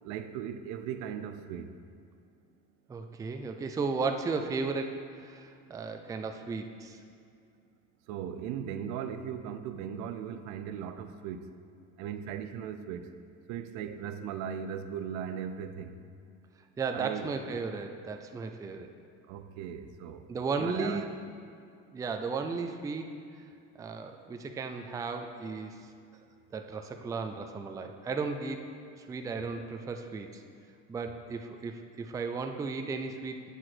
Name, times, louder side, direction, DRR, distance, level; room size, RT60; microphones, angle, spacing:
voice 1, 0.0-1.7 8.1-11.5 12.0-13.1 13.5-16.0 16.9-17.3 19.3-20.3 20.6-21.1, right 8 dB, 75° right, 0.6 m, -38 dB
voice 2, 2.9-7.0 16.8-18.9 20.3-21.0 21.9-23.1 23.8-25.8 26.5-28.6 29.1-30.4 30.9-33.5, right 4 dB, 10° right, 0.3 m, -35 dB
8.0 x 4.8 x 5.9 m
cardioid pair, 135°, 29 cm